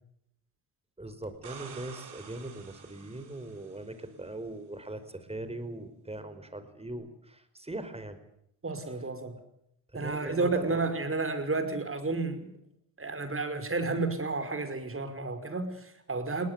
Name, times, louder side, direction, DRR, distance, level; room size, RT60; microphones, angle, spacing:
voice 1, 1.0-8.2 9.9-10.8, right 2 dB, 15° right, 11 dB, 4.9 m, -40 dB
sound 1, 1.2-4.1 6.9-7.0, right 7 dB, 60° right, 5.6 m, -48 dB
voice 2, 8.6-9.4 9.9-12.5 13.0-16.5, right 3 dB, 30° right, 9 dB, 5.5 m, -31 dB
21.0 x 18.5 x 9.7 m, 0.75 s
supercardioid pair, 70°, 46 cm